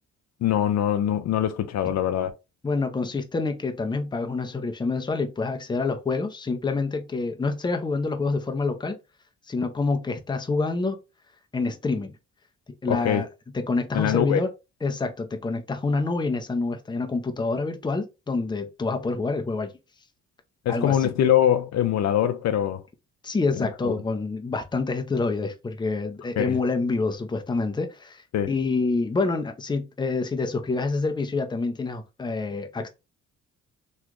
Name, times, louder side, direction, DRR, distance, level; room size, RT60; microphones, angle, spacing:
voice 1, 0.4-2.3 12.9-13.2 13.9-14.4 20.7-22.8 23.6-23.9 26.4-26.6 28.3-28.5, left 10 dB, 60° left, 0.6 m, -23 dB
voice 2, 2.6-9.0 9.5-11.0 11.5-12.1 12.8-13.3 13.5-14.5 14.8-19.7 20.7-21.1 23.2-32.9, left 3 dB, 15° left, 0.6 m, -27 dB
3.1 x 2.4 x 3.6 m
cardioid pair, 90°, 30 cm